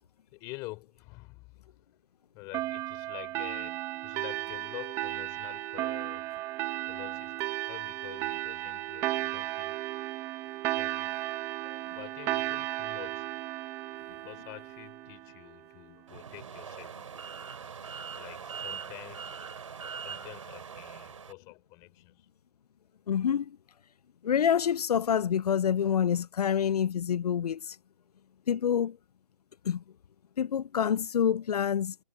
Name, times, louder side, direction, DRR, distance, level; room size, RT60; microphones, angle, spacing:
voice 1, 0.3-1.8 2.3-6.3 6.9-7.4 7.7-9.9 10.7-11.2 11.9-13.4 14.1-17.1 18.1-19.3 20.0-22.3, left 24 dB, 15° left, 3.4 m, -47 dB
sound 1, 2.5-15.6, right 17 dB, 15° right, 1.2 m, -35 dB
sound 2, 16.1-21.3, right 6 dB, 55° right, 4.8 m, -42 dB
voice 2, 23.1-23.6 24.2-27.8 28.5-29.0 29.6-29.8 30.4-32.0, left 8 dB, 85° left, 0.4 m, -27 dB
hypercardioid pair, 165°, 19 cm